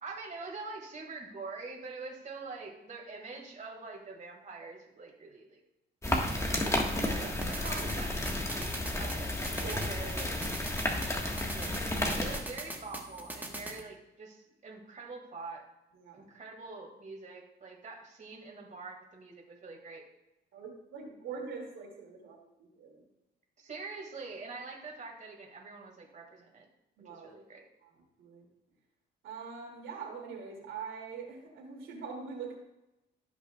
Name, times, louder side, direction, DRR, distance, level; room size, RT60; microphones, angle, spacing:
voice 1, 0.0-5.6 6.4-8.2 9.0-9.3 9.6-10.4 11.5-15.7 16.1-20.0 23.6-26.6 27.0-27.7, right 3 dB, 40° right, -1 dB, 2.1 m, -44 dB
sound 1, 6.0-12.4, left 1 dB, 15° left, 1.5 m, -32 dB
voice 2, 6.1-6.5 7.6-7.9 8.5-9.1 9.6-9.9 10.9-11.7 15.9-16.3 20.5-23.0 27.0-27.3 27.8-28.5 29.2-32.5, right 5 dB, 80° right, -1 dB, 2.5 m, -44 dB
sound 2, 7.4-13.8, right 1 dB, 10° right, 1.3 m, -43 dB
15.5 x 6.0 x 2.3 m, 0.93 s
cardioid pair, 90°, 20 cm